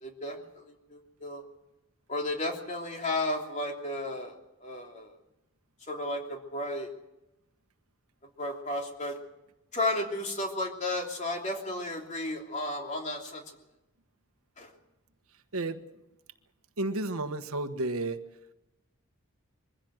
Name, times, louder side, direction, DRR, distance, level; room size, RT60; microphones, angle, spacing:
voice 1, 0.0-1.4 2.1-4.3 4.6-5.1 5.9-6.9 8.4-9.1 9.7-13.4 14.6-14.7, left 1 dB, 35° left, 2 dB, 3.1 m, -33 dB
voice 2, 16.8-18.2, right 2 dB, 90° right, 9 dB, 1.4 m, -31 dB
23.0 x 15.5 x 7.9 m, 0.92 s
head